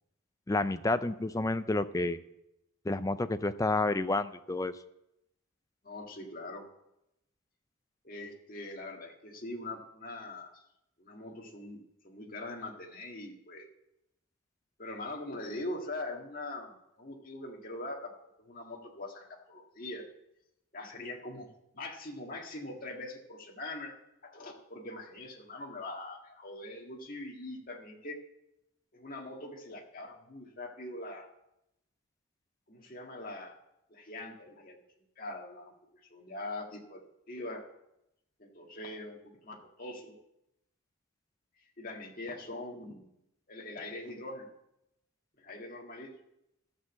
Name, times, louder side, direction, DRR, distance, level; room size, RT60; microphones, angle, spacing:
voice 1, 0.5-2.2 2.8-4.8, left 2 dB, 15° left, 11 dB, 0.4 m, -30 dB
voice 2, 5.8-6.7 8.0-10.6 11.0-13.7 14.8-18.1 18.4-20.0 20.7-21.5 21.7-23.9 24.2-28.2 28.9-31.3 32.7-33.5 33.9-34.8 35.2-35.7 36.1-37.6 38.4-40.1 41.8-43.1 43.5-44.5 45.4-46.1, left 2 dB, 40° left, 1 dB, 1.8 m, -42 dB
13.0 x 6.4 x 7.3 m, 0.85 s
head